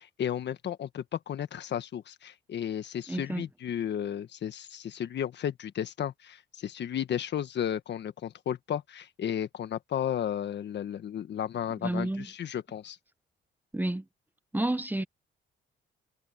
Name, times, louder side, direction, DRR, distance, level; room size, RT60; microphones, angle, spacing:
voice 1, 0.2-13.0, left 9 dB, 60° left, 1.4 m, -33 dB
voice 2, 3.1-3.5 11.8-12.3 13.7-14.0 14.5-15.0, right 1 dB, 10° right, 1.1 m, -30 dB
cardioid pair, 90°, 20 cm